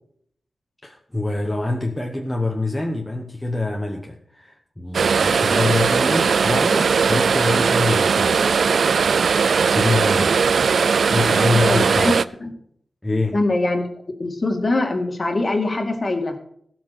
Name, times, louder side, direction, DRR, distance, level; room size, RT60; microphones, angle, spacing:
voice 1, 0.8-8.6 9.6-10.4 11.1-12.1 13.0-13.4, left 2 dB, 10° left, 0 dB, 1.1 m, -25 dB
sound 1, 4.9-12.2, right 5 dB, 70° right, 0.4 m, -18 dB
voice 2, 11.7-12.1 12.4-12.6 13.3-13.9 14.2-16.4, left 2 dB, 30° left, 4 dB, 2.1 m, -22 dB
17.0 x 6.1 x 6.7 m, 0.66 s
wide cardioid pair, 160°, 0 cm